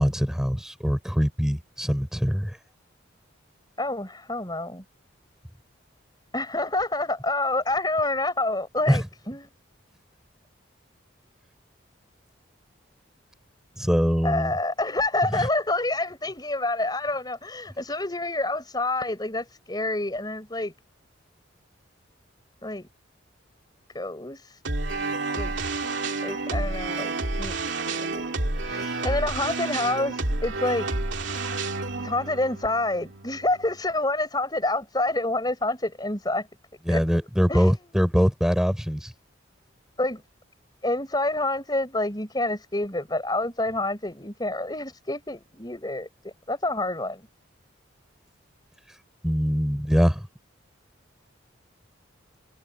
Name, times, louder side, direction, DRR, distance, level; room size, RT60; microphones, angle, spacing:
voice 1, 0.0-2.5 8.9-9.0 13.8-14.5 36.9-39.1 49.2-50.2, equal, 5° right, 4.2 m, -23 dB
voice 2, 3.8-4.8 6.3-9.5 14.2-20.7 22.6-22.9 23.9-24.6 25.3-25.5 25.8-27.6 27.9-28.4 28.6-30.9 32.0-36.5 36.9-37.0 37.5-37.7 40.0-40.2 40.8-47.3, left 2 dB, 20° left, 4.5 m, -28 dB
sound 1, 24.6-33.8, right 3 dB, 70° right, 2.4 m, -30 dB
head